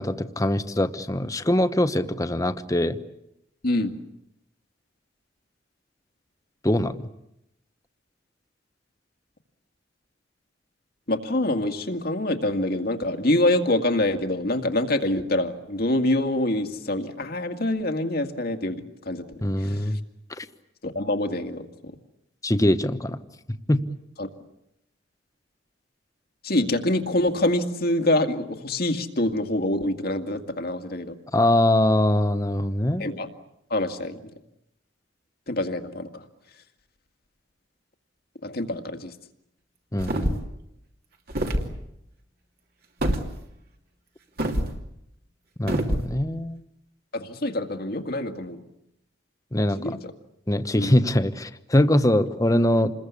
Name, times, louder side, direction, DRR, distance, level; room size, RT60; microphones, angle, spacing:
voice 1, 0.0-3.0 6.6-7.1 19.4-20.0 20.4-20.5 22.4-23.2 23.7-23.8 31.3-33.0 39.9-40.4 45.6-46.6 49.5-50.0 50.5-52.9, left 1 dB, 20° left, 10 dB, 1.1 m, -22 dB
voice 2, 11.1-19.3 19.6-20.0 20.8-22.0 24.2-24.3 26.4-31.2 33.0-33.3 33.7-34.3 35.5-36.2 38.4-39.1 47.1-48.6 49.8-50.1 50.7-51.0, left 1 dB, 55° left, 6 dB, 2.1 m, -26 dB
sound 1, 40.0-40.5 41.3-41.7 43.0-43.3 44.4-44.7 45.7-46.1, right 1 dB, 55° right, 2.8 m, -25 dB
28.0 x 21.5 x 8.4 m, 0.80 s
head